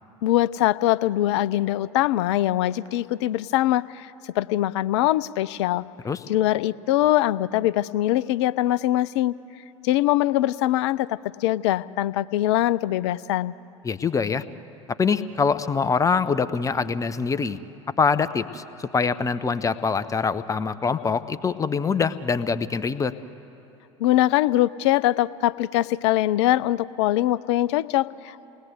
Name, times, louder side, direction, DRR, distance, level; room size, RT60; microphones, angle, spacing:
voice 1, 0.2-5.8 6.3-9.3 9.8-13.6 24.0-28.5, left 14 dB, 60° left, 18 dB, 0.5 m, -22 dB
voice 2, 13.8-14.4 15.0-17.6 18.0-23.1, left 5 dB, 20° left, 13 dB, 0.9 m, -24 dB
28.5 x 19.5 x 8.3 m, 3.0 s
figure-of-eight pair, 75°, 16 cm